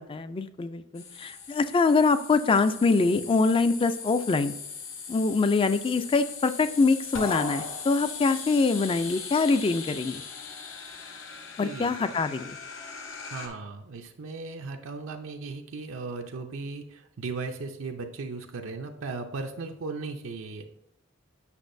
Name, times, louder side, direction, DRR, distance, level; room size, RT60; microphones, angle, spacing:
voice 1, 0.0-4.5 5.1-10.2 11.6-12.6, left 4 dB, 25° left, 12 dB, 0.3 m, -24 dB
sound 1, 1.0-13.5, left 6 dB, 70° left, 0.9 m, -40 dB
sound 2, 7.1-8.4, left 2 dB, 85° left, 1.2 m, -35 dB
voice 2, 11.6-12.1 13.3-20.6, right 4 dB, 85° right, 4 dB, 0.5 m, -37 dB
8.3 x 5.9 x 2.6 m, 0.78 s
head